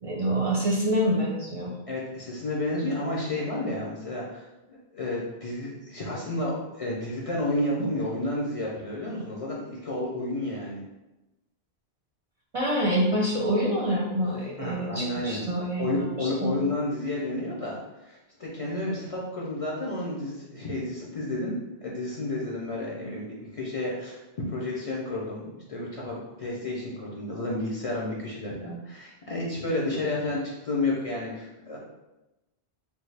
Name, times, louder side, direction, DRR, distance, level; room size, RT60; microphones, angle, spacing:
voice 1, 0.0-1.7 12.5-16.5, equal, 45° right, -5 dB, 0.5 m, -26 dB
voice 2, 1.9-10.8 14.6-15.4 15.8-17.8 18.0-21.5 21.8-24.2 24.5-31.8, left 1 dB, 45° left, -4 dB, 0.5 m, -31 dB
3.4 x 2.3 x 3.2 m, 0.98 s
omnidirectional pair, 1.1 m